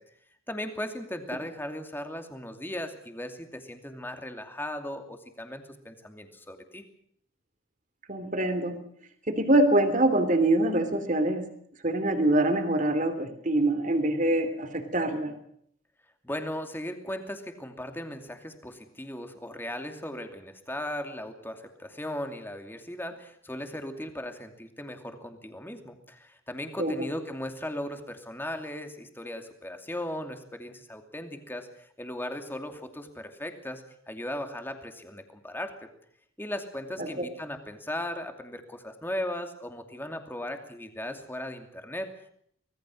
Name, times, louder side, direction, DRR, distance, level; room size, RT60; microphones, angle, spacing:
voice 1, 0.5-6.8 16.2-35.7 36.4-42.3, left 1 dB, 10° left, 5 dB, 2.6 m, -37 dB
voice 2, 8.1-8.8 9.3-11.5 11.8-15.3 26.8-27.1 37.0-37.2, right 1 dB, 40° right, 8 dB, 3.1 m, -24 dB
25.0 x 19.0 x 6.4 m, 0.67 s
head